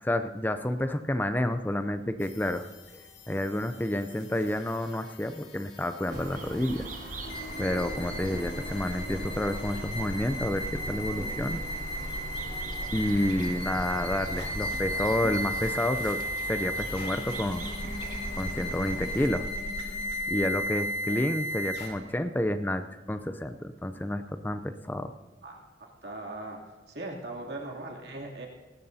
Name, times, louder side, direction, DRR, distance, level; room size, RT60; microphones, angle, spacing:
voice 1, 0.0-2.7 2.9-6.9 7.6-11.6 12.9-17.7 18.4-19.6 20.3-25.1, left 1 dB, 10° left, 9 dB, 0.5 m, -30 dB
sound 1, 2.2-21.9, equal, 70° left, 3.2 m, -35 dB
sound 2, 6.1-12.9, equal, 15° right, 1.6 m, -48 dB
sound 3, 6.1-19.3, right 1 dB, 45° right, 1.9 m, -41 dB
voice 2, 25.4-26.6 26.9-28.5, right 2 dB, 70° right, -1 dB, 2.8 m, -40 dB
19.0 x 16.5 x 2.8 m, 1.3 s
head